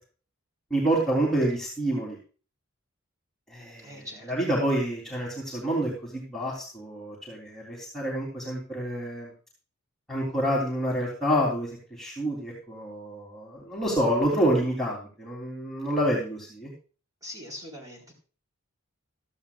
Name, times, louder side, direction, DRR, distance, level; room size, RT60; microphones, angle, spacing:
voice 1, 0.7-2.2 3.5-9.3 10.1-16.7, right 1 dB, ahead, -5 dB, 3.3 m, -28 dB
voice 2, 3.8-4.3 17.2-18.1, left 1 dB, 15° right, 0 dB, 4.3 m, -42 dB
16.0 x 13.5 x 2.4 m, 0.37 s
head